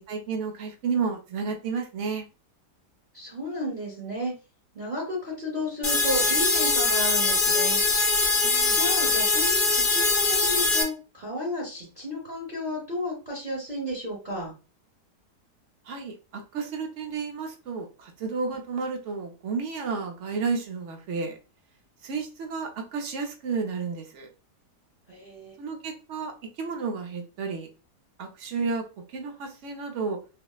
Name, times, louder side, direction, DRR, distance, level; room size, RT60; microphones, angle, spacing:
voice 1, 0.1-2.2 8.4-8.8 15.9-21.4 22.0-24.3 25.6-27.7 28.2-28.9 29.1-30.2, right 5 dB, 60° right, 3 dB, 0.8 m, -32 dB
voice 2, 3.1-4.3 4.7-7.8 8.7-14.5 18.4-18.5 25.1-25.5, left 1 dB, 35° right, -5 dB, 0.9 m, -33 dB
sound 1, 5.8-10.8, left 3 dB, 70° left, 0.5 m, -22 dB
4.1 x 2.0 x 2.3 m, 0.32 s
omnidirectional pair, 1.8 m